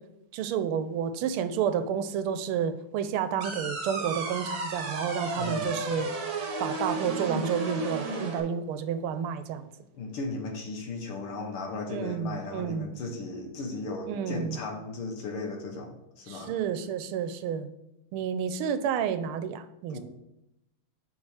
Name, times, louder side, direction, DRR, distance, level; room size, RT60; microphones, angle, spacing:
voice 1, 0.3-6.1 6.6-9.7 11.9-12.9 14.1-14.6 16.3-17.7 18.1-20.0, right 8 dB, 85° right, 11 dB, 1.5 m, -30 dB
sound 1, 3.4-8.4, right 2 dB, 50° right, 1.4 m, -33 dB
voice 2, 5.3-5.8 9.9-16.6 19.9-20.0, left 3 dB, 90° left, 3 dB, 2.1 m, -36 dB
7.3 x 4.7 x 4.8 m, 0.88 s
omnidirectional pair, 2.3 m